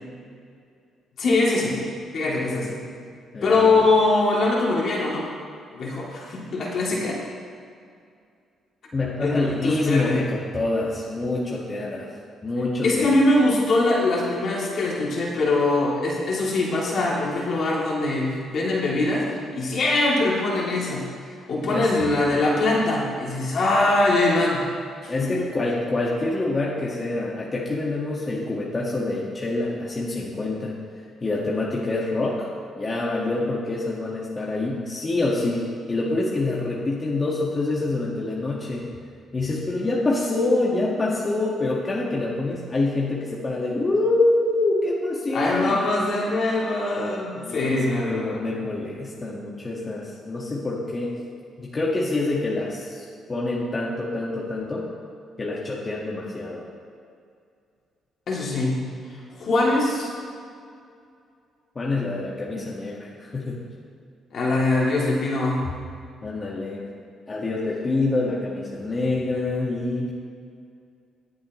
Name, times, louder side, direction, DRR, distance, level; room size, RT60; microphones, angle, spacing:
voice 1, 1.2-1.8 2.1-2.8 3.4-5.3 5.7-7.2 9.2-10.3 12.8-19.3 19.5-21.0 21.5-24.6 25.0-25.1 25.4-25.5 45.3-48.5 58.3-58.8 59.4-60.1 64.3-65.6, left 2 dB, 60° left, -4 dB, 2.9 m, -22 dB
voice 2, 3.3-3.7 8.9-12.1 12.4-13.2 21.7-22.1 25.1-30.7 31.2-32.5 32.8-38.8 39.3-45.8 47.4-51.1 51.6-54.8 55.4-56.6 61.7-63.6 66.2-66.8 67.3-70.1, left 2 dB, 30° left, -4 dB, 1.7 m, -26 dB
21.0 x 7.3 x 3.2 m, 2.3 s
cardioid pair, 90°, 0 cm